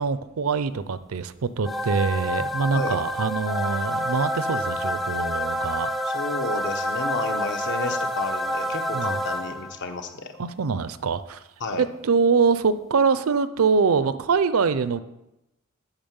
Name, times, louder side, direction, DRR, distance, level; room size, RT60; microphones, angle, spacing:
voice 1, 0.0-5.9 8.9-9.2 10.4-11.4 11.8-15.0, right 5 dB, 75° right, 14 dB, 0.5 m, -24 dB
sound 1, 1.6-9.9, equal, ahead, 0.4 m, -28 dB
voice 2, 6.0-10.3 11.6-11.8, left 3 dB, 60° left, 7 dB, 1.0 m, -31 dB
8.9 x 5.9 x 7.2 m, 0.92 s
head